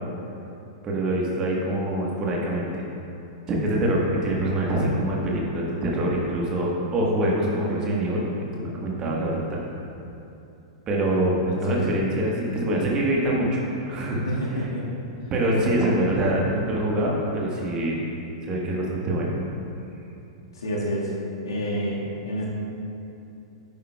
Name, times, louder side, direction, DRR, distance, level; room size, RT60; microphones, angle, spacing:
voice 1, 0.8-2.8 3.5-8.2 8.5-9.6 10.9-14.2 15.3-18.0 18.4-19.3, right 1 dB, 25° right, -3 dB, 1.5 m, -24 dB
voice 2, 14.3-14.9 20.6-21.1 21.4-22.5, equal, 65° left, -5 dB, 1.9 m, -28 dB
10.5 x 9.1 x 2.4 m, 2.7 s
figure-of-eight pair, 100°, 3 cm